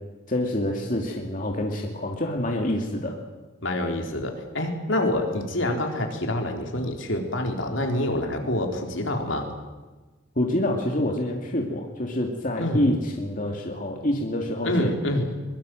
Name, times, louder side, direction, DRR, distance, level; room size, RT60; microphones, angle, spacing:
voice 1, 0.3-3.2 10.4-14.9, left 1 dB, 40° left, 1 dB, 2.4 m, -27 dB
voice 2, 3.6-9.5 12.6-12.9 14.6-15.3, left 1 dB, 70° left, 3 dB, 4.0 m, -26 dB
23.5 x 22.0 x 7.8 m, 1.2 s
head